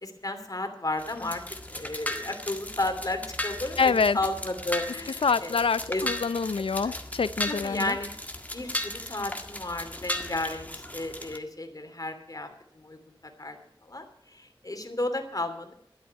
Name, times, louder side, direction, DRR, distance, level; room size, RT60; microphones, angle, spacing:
voice 1, 0.0-1.4 1.7-5.6 5.9-6.0 6.8-6.9 7.5-8.1 8.5-12.5 12.8-13.0 13.4-13.6 13.9-15.7, left 2 dB, 40° left, 2.7 m, -33 dB
sound 1, 1.0-11.4, left 1 dB, 15° left, 1.7 m, -36 dB
voice 2, 3.8-4.2 5.2-7.9, left 5 dB, 90° left, 0.5 m, -26 dB
12.5 x 8.4 x 9.3 m
wide cardioid pair, 45°, 9 cm